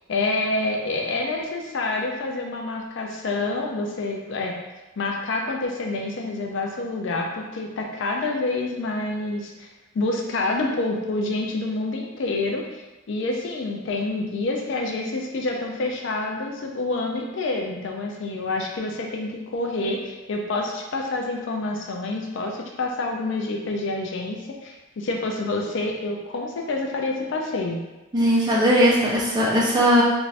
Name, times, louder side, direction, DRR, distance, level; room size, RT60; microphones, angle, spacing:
voice 1, 0.1-4.6 5.0-9.7 9.9-27.8, left 2 dB, 60° left, 1 dB, 0.4 m, -27 dB
voice 2, 28.1-30.0, equal, 20° right, -6 dB, 0.6 m, -19 dB
2.6 x 2.5 x 3.2 m, 1.1 s
head